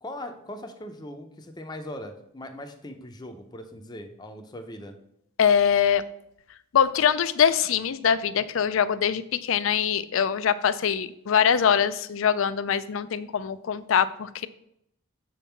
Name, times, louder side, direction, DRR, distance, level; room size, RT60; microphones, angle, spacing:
voice 1, 0.0-5.0, left 1 dB, 20° left, 5 dB, 0.6 m, -40 dB
voice 2, 5.4-6.0 6.7-14.5, left 8 dB, 65° left, 14 dB, 0.4 m, -23 dB
7.1 x 3.7 x 5.7 m, 0.75 s
head